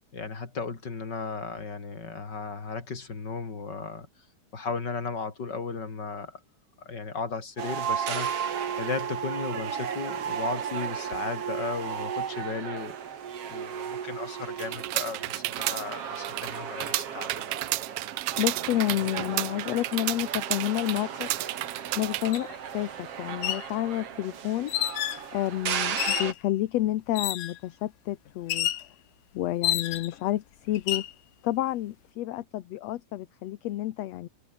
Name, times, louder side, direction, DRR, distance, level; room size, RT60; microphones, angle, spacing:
voice 1, 0.1-4.1 4.5-6.4 6.8-8.4 8.8-13.0 13.5-17.5, left 4 dB, 35° left, 3.9 m, -35 dB
sound 1, 7.6-26.3, right 8 dB, 55° right, 2.7 m, -35 dB
sound 2, 14.6-22.4, right 18 dB, 80° right, 1.8 m, -32 dB
voice 2, 18.4-21.3 22.0-24.7 25.3-28.7 29.3-31.0 31.4-34.3, left 14 dB, 65° left, 1.9 m, -30 dB
sound 3, 22.3-22.4 23.3-23.7 24.7-25.2 26.0-26.4 27.1-27.6 28.5-28.9 29.6-30.2 30.7-31.1, left 13 dB, 90° left, 2.8 m, -29 dB
omnidirectional pair, 3.5 m